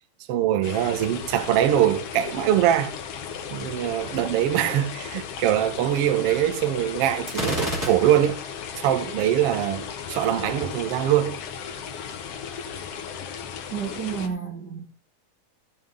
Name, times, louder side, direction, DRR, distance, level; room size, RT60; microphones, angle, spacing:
voice 1, 0.3-2.9 3.5-8.4 8.7-11.4, right 11 dB, 80° right, 1.3 m, -23 dB
sound 1, 0.6-14.3, left 7 dB, 70° left, 1.4 m, -36 dB
Gunshot gunfire, 7.3-8.5, equal, 5° right, 3.4 m, -29 dB
voice 2, 13.7-14.9, right 7 dB, 65° right, 1.0 m, -31 dB
15.0 x 7.4 x 3.7 m
omnidirectional pair, 4.2 m